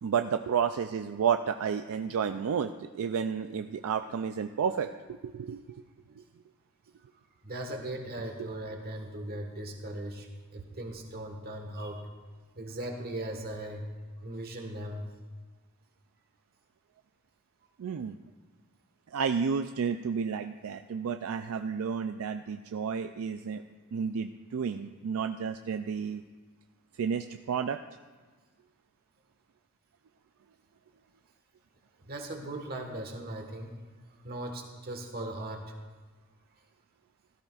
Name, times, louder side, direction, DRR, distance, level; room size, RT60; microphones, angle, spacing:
voice 1, 0.0-4.9 5.2-5.8 6.2-6.3 17.8-18.2 19.1-23.6 23.9-26.2 26.9-27.8, right 6 dB, 70° right, 8 dB, 0.4 m, -31 dB
voice 2, 7.4-12.1 12.5-13.8 14.2-15.1 32.0-33.8 34.2-35.7, right 1 dB, 45° right, 3 dB, 1.5 m, -38 dB
16.5 x 13.0 x 2.4 m, 1.4 s
head